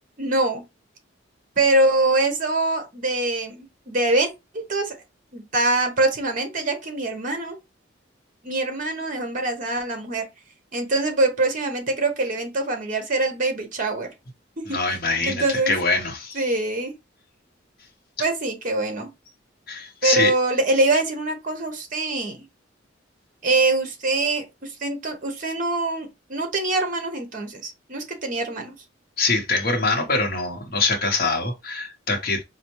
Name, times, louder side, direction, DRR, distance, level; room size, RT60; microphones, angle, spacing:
voice 1, 0.2-0.6 1.6-5.0 5.3-7.6 8.4-10.2 10.7-14.1 14.6-14.8 15.2-15.7 16.3-16.9 18.2-19.1 20.0-22.5 23.4-28.8, right 2 dB, 45° right, 0.9 m, -24 dB
voice 2, 14.7-16.4 19.7-20.3 29.2-32.4, left 3 dB, 50° left, 0.8 m, -24 dB
4.2 x 2.2 x 3.0 m
head